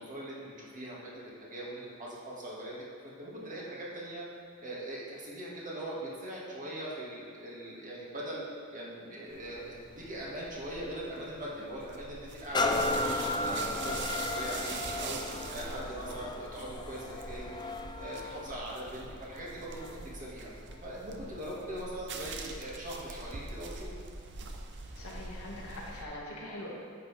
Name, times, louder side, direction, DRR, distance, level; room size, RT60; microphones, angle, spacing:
voice 1, 0.0-2.8 3.0-4.2 4.6-8.4 8.7-17.7 18.0-20.5 20.8-23.9, right 1 dB, 40° right, -6 dB, 2.0 m, -41 dB
sound 1, 9.3-26.0, right 3 dB, 55° right, 0.7 m, -44 dB
sound 2, 12.5-20.1 20.7-20.8, left 2 dB, 20° left, 0.4 m, -35 dB
voice 2, 25.0-26.7, left 1 dB, 85° left, -4 dB, 1.9 m, -42 dB
10.0 x 7.8 x 3.5 m, 2.1 s
head